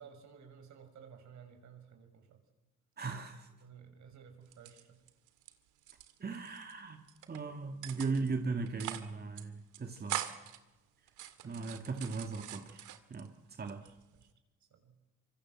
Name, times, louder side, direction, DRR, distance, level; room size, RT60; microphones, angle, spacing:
voice 1, 0.0-2.4 3.6-5.0 11.4-12.0 13.8-14.3 14.7-14.9, right 7 dB, 70° right, 5 dB, 6.6 m, -55 dB
voice 2, 3.0-3.5 6.2-7.0 7.3-10.2 11.4-12.8 13.1-13.8, right 4 dB, 30° right, 5 dB, 2.2 m, -38 dB
sound 1, 4.5-5.5 5.8-6.7 7.1-7.4 7.8-8.3 8.7-9.1 9.4-9.5 9.7-10.6 11.1-13.3 13.7-14.3, right 12 dB, 90° right, 2.2 m, -43 dB
26.0 x 25.0 x 7.7 m, 1.0 s
cardioid pair, 90°, 30 cm